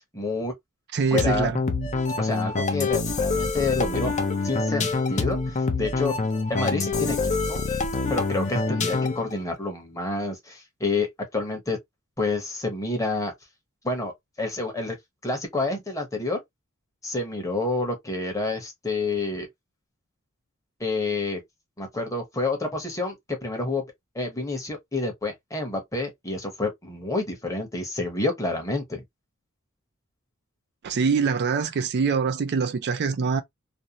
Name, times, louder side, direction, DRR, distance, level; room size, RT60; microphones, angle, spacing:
voice 1, 0.1-0.5 1.1-1.5 2.2-4.1 4.4-6.1 6.5-7.2 7.5-7.6 8.1-11.8 12.2-13.3 13.8-14.1 14.4-14.9 15.2-16.4 17.0-19.5 20.8-21.4 21.8-23.8 24.1-29.0, left 3 dB, 15° left, 0.9 m, -28 dB
voice 2, 0.9-1.6 30.8-33.4, right 5 dB, 50° right, 0.4 m, -24 dB
sound 1, 1.2-9.3, left 3 dB, 35° left, 0.5 m, -26 dB
2.6 x 2.1 x 2.8 m
head